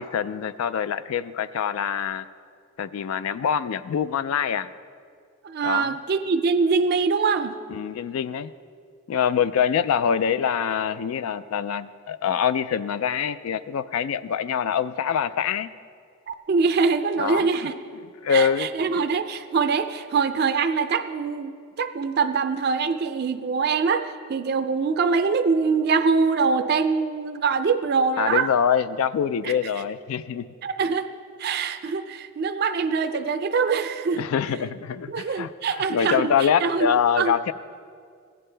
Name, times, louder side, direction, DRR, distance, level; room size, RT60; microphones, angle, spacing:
voice 1, 0.0-2.3 2.8-4.7 5.6-5.9 7.7-8.5 9.1-15.7 17.2-17.5 18.2-18.7 28.2-30.4 34.2-35.5 35.9-37.5, left 7 dB, 80° left, 15 dB, 0.3 m, -24 dB
voice 2, 5.4-7.5 16.3-17.7 18.3-24.0 24.3-28.5 29.4-29.6 30.6-31.1 31.4-34.3 35.1-36.9 37.2-37.3, right 5 dB, 50° right, 9 dB, 0.4 m, -23 dB
16.0 x 9.4 x 3.3 m, 2.2 s
head